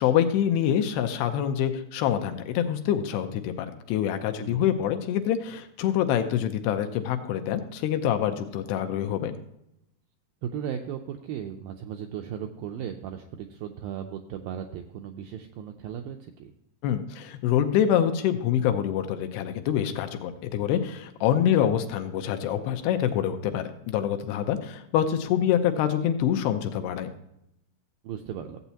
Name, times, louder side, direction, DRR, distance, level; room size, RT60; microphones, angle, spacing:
voice 1, 0.0-9.4 16.8-27.1, left 10 dB, 90° left, 7 dB, 2.7 m, -26 dB
voice 2, 4.4-4.7 10.4-16.5 21.6-21.7 28.0-28.6, right 9 dB, 85° right, 4 dB, 2.0 m, -36 dB
15.0 x 8.1 x 2.9 m, 0.82 s
omnidirectional pair, 4.7 m